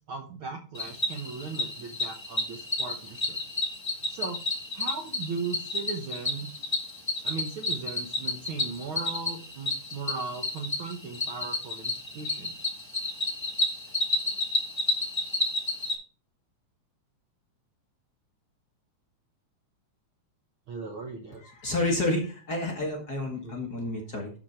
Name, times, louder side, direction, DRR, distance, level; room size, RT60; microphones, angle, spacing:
voice 1, 0.1-3.4 4.1-4.4 4.7-6.5 7.2-12.5 20.7-21.4 23.4-23.6, right 4 dB, 60° right, 2 dB, 1.4 m, -37 dB
Cricket, 0.7-15.9, left 2 dB, 10° left, 1.3 m, -31 dB
voice 2, 21.4-24.3, left 2 dB, 40° left, 0 dB, 1.6 m, -30 dB
11.5 x 4.7 x 4.3 m, 0.38 s
omnidirectional pair, 3.5 m